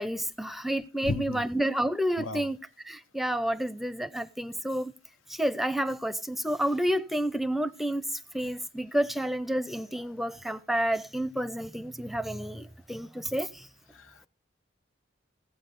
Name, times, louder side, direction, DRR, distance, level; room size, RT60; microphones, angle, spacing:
voice 1, 0.0-2.6 2.9-4.9 5.4-8.0 8.3-13.5, right 1 dB, ahead, 0.5 m, -30 dB
voice 2, 1.0-1.4 2.2-2.5 13.9-14.3, left 2 dB, 85° left, 0.8 m, -34 dB
17.0 x 8.2 x 5.2 m
head